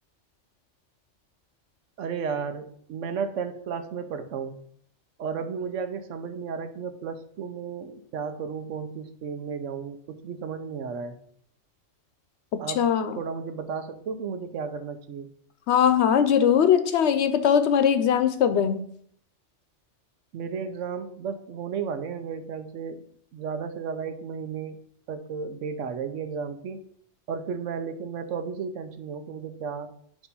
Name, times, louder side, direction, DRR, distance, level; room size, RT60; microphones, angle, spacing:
voice 1, 2.0-4.6 5.2-11.2 12.6-12.9 13.1-15.3 20.3-23.0 23.3-24.8 25.1-26.8 27.3-29.9, right 6 dB, 80° right, 9 dB, 1.1 m, -33 dB
voice 2, 12.8-13.2 15.7-18.8, left 8 dB, 70° left, 10 dB, 0.8 m, -20 dB
8.1 x 2.9 x 5.4 m, 0.63 s
omnidirectional pair, 1.3 m